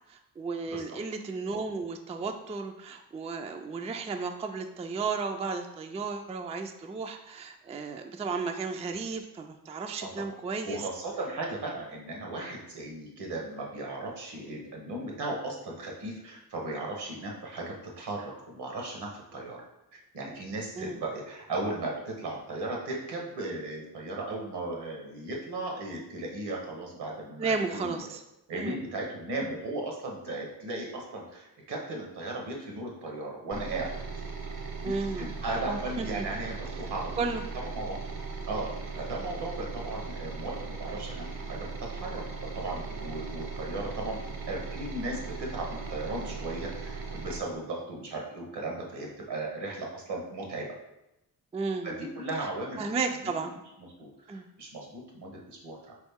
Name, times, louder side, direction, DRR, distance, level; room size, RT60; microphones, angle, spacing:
voice 1, 0.1-10.9 20.8-21.0 27.4-28.2 28.5-28.8 34.8-35.3 36.0-36.3 37.2-37.4 51.5-52.1 52.8-53.5 54.3-54.5, right 4 dB, 15° right, 5 dB, 0.3 m, -33 dB
voice 2, 0.7-1.0 10.0-10.1 10.6-19.6 19.9-28.0 28.5-34.0 34.8-37.1 37.5-38.0 38.5-50.7 51.8-52.9 53.2-53.5 54.0-55.9, right 2 dB, 75° right, 0 dB, 1.2 m, -36 dB
sound 1, 33.5-47.4, right 4 dB, 55° right, 0.8 m, -38 dB
3.9 x 3.1 x 3.5 m, 0.88 s
cardioid pair, 60°, 41 cm